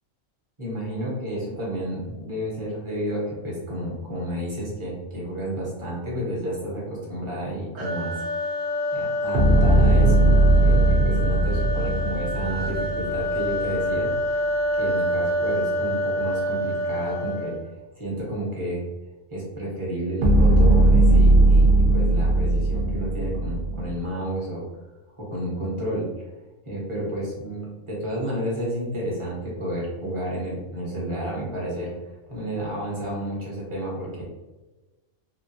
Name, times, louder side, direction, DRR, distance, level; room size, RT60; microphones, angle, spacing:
voice 1, 0.6-8.1 8.9-10.3 10.6-14.4 14.7-17.6 17.9-18.8 19.3-24.6 25.2-26.1 26.6-34.2, right 1 dB, 25° right, -6 dB, 0.9 m, -31 dB
sound 1, 7.8-17.7, left 1 dB, 90° right, 1.1 m, -27 dB
sound 2, 9.3-13.6 20.2-24.0, right 2 dB, 55° right, 0.6 m, -18 dB
2.9 x 2.3 x 2.6 m, 1.2 s
omnidirectional pair, 1.3 m